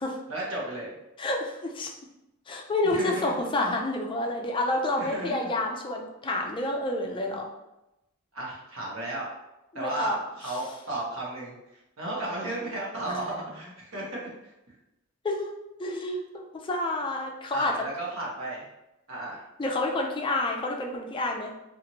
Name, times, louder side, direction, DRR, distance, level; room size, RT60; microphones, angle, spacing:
voice 1, 0.3-0.9 2.8-3.4 5.0-5.5 8.3-9.3 9.7-11.5 12.0-14.2 17.5-18.6 19.1-19.4, right 1 dB, 80° right, -4 dB, 1.0 m, -34 dB
voice 2, 1.2-1.9 2.5-7.5 9.7-10.2 10.4-10.5 13.1-13.3 15.2-15.5 15.8-17.8 19.6-21.5, left 2 dB, 25° left, 1 dB, 0.3 m, -29 dB
2.9 x 2.5 x 2.7 m, 0.92 s
head